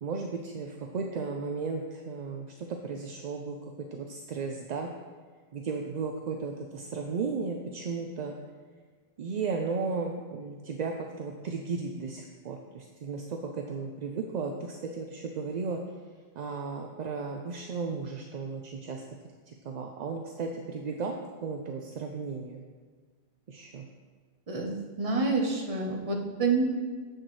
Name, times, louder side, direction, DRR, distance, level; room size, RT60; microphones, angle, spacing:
voice 1, 0.0-4.9 5.5-8.3 9.2-15.8 16.4-19.0 19.6-21.2 21.4-22.6 23.5-23.9, right 4 dB, 55° right, 2 dB, 0.5 m, -35 dB
voice 2, 24.5-26.6, right 3 dB, 35° right, 1 dB, 0.9 m, -28 dB
7.6 x 6.5 x 3.1 m, 1.5 s
omnidirectional pair, 1.1 m